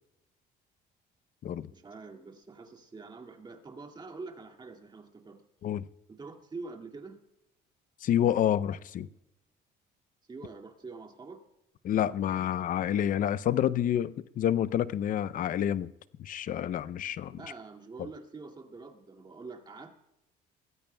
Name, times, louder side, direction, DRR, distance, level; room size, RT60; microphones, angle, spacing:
voice 1, 1.7-5.4 6.1-7.2 10.3-11.4 17.3-19.9, right 4 dB, 25° right, 2.1 m, -45 dB
voice 2, 8.0-9.1 11.8-15.9 16.2-17.4, left 10 dB, 50° left, 0.6 m, -28 dB
22.5 x 16.0 x 2.3 m
cardioid pair, 110°, 17 cm